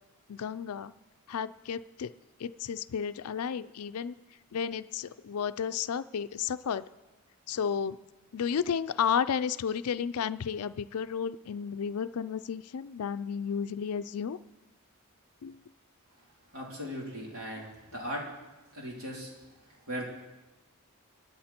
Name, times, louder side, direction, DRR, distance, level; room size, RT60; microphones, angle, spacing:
voice 1, 0.3-0.9 1.3-2.1 2.4-4.1 4.5-6.9 7.5-8.0 8.3-14.4 15.4-15.6 17.6-17.7, left 7 dB, 85° left, 13 dB, 0.4 m, -32 dB
voice 2, 16.5-18.3 18.7-19.3 19.9-20.0, equal, 75° right, -2 dB, 3.8 m, -38 dB
23.5 x 10.0 x 4.4 m, 1.1 s
head